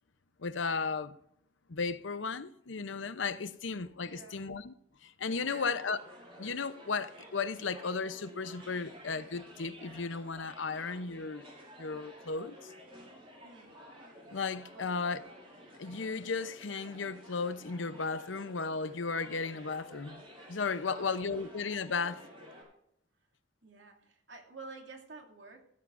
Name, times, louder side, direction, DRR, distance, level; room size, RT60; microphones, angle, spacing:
voice 1, 0.4-1.1 1.7-4.7 5.0-6.0 6.4-11.5 11.8-12.7 14.3-15.2 15.8-20.2 20.5-22.2, left 4 dB, 85° left, 0.8 m, -35 dB
voice 2, 4.1-4.5 5.4-5.8 13.4-13.7 14.7-15.0 20.8-21.5 23.6-25.6, right 3 dB, 75° right, 2.6 m, -50 dB
sound 1, 5.3-22.6, equal, 30° right, 5.6 m, -52 dB
16.0 x 14.5 x 2.6 m
head